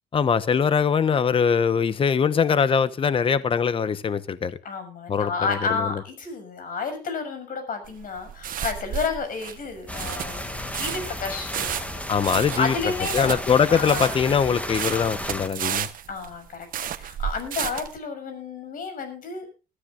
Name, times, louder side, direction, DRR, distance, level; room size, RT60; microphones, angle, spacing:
voice 1, 0.1-4.6 5.1-6.0 12.1-12.7 13.1-15.9, left 6 dB, 30° left, 1.0 m, -22 dB
voice 2, 4.6-12.0 12.6-13.4 13.7-14.2 16.1-16.7 17.0-19.5, left 5 dB, 55° left, 6.6 m, -31 dB
sound 1, 7.8-18.0, right 10 dB, 55° right, 1.2 m, -32 dB
sound 2, 9.9-15.5, left 1 dB, 10° left, 2.2 m, -33 dB
21.0 x 13.5 x 2.5 m
cardioid pair, 110°, 17 cm